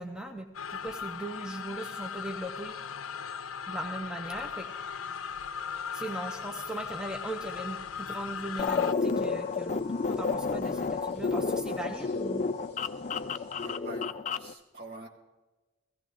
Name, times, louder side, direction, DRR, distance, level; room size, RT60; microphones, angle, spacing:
voice 1, 0.0-2.8 3.7-4.7 5.9-12.4, right 1 dB, 5° right, 3 dB, 0.6 m, -39 dB
sound 1, 0.5-8.9, left 7 dB, 90° left, 0.5 m, -38 dB
sound 2, 4.3-13.8, left 1 dB, 15° left, 3.2 m, -57 dB
sound 3, 8.6-14.5, left 4 dB, 35° left, 0.3 m, -31 dB
voice 2, 13.5-15.1, right 2 dB, 50° right, 0 dB, 2.2 m, -46 dB
16.5 x 15.5 x 3.8 m, 1.2 s
head